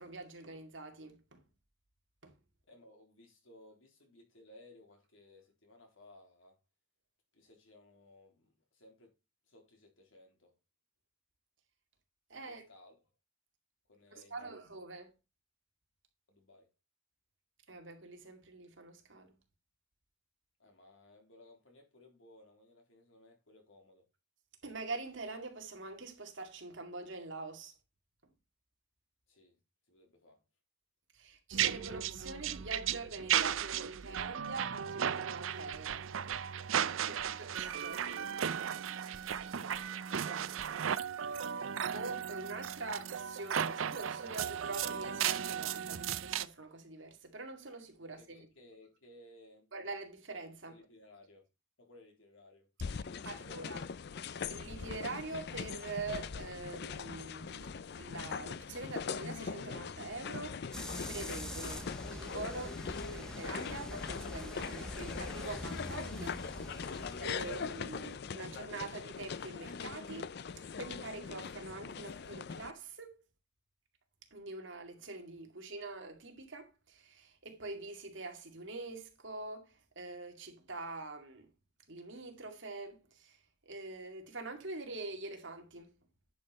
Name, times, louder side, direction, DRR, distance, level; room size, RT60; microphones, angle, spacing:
voice 1, 0.0-1.4 2.2-2.4 12.3-12.6 14.1-15.1 17.7-19.3 24.6-27.7 31.1-36.1 37.1-38.3 41.9-48.5 49.7-50.8 53.0-53.8 54.5-70.4 70.8-73.2 74.3-81.5 81.9-83.4 83.7-85.9, right 3 dB, 65° right, 2.2 m, -45 dB
voice 2, 2.7-6.6 7.3-9.2 9.5-10.6 12.4-13.0 13.9-14.6 16.3-16.7 20.6-24.0 29.3-29.6 29.9-30.4 31.8-32.1 39.4-40.7 48.2-49.7 50.7-51.4 51.8-52.7 53.1-54.1, left 1 dB, 75° left, 3.5 m, -59 dB
sound 1, 31.5-46.5, right 9 dB, 80° right, 0.5 m, -35 dB
sound 2, 52.8-72.7, left 6 dB, 55° left, 0.5 m, -41 dB
sound 3, 60.7-68.2, equal, 5° left, 0.9 m, -45 dB
10.5 x 5.5 x 4.2 m
head